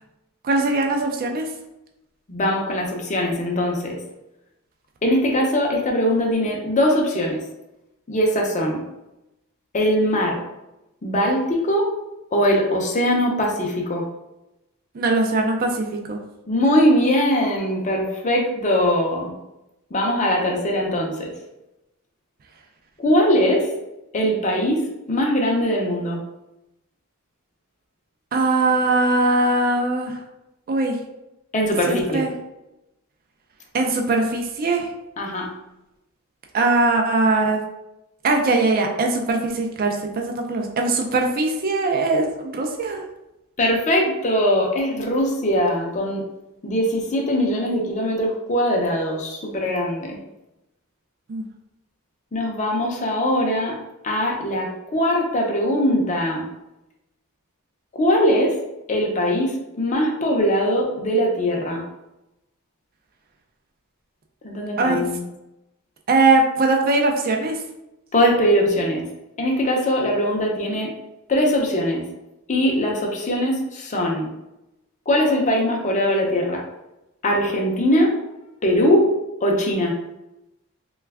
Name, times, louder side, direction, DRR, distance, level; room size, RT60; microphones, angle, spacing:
voice 1, 0.4-1.5 14.9-16.2 28.3-30.2 30.7-31.0 31.9-32.3 33.7-34.9 36.5-37.6 38.2-43.0 51.3-51.4 64.8-65.1 66.1-67.6, right 2 dB, 45° right, 2 dB, 0.4 m, -21 dB
voice 2, 2.3-4.0 5.0-7.4 8.1-8.8 9.7-10.4 11.0-11.9 12.3-14.0 16.5-19.3 19.9-21.3 23.0-23.7 24.1-26.2 31.5-32.3 35.2-35.5 43.6-46.2 46.6-50.2 52.3-53.8 54.0-56.5 57.9-58.6 58.9-61.8 64.4-65.2 68.1-69.1 69.4-70.9 71.3-72.1 72.5-74.3 75.1-76.6 77.2-78.2 78.6-79.1 79.4-80.0, equal, 35° left, 0 dB, 0.6 m, -21 dB
3.2 x 2.3 x 3.3 m, 0.92 s
head